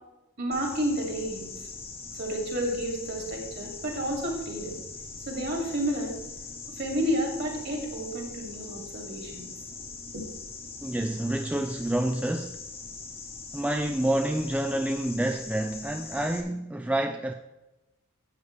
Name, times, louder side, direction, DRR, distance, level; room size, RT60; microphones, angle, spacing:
voice 1, 0.4-1.5 2.1-4.8 5.3-6.2 6.8-9.5 10.1-10.2, equal, 50° right, 2.5 m, -31 dB
sound 1, 0.5-16.4, left 4 dB, 25° left, 1.1 m, -42 dB
voice 2, 10.8-12.6 13.5-17.3, right 1 dB, 5° right, 0.3 m, -28 dB
12.0 x 8.1 x 3.3 m
head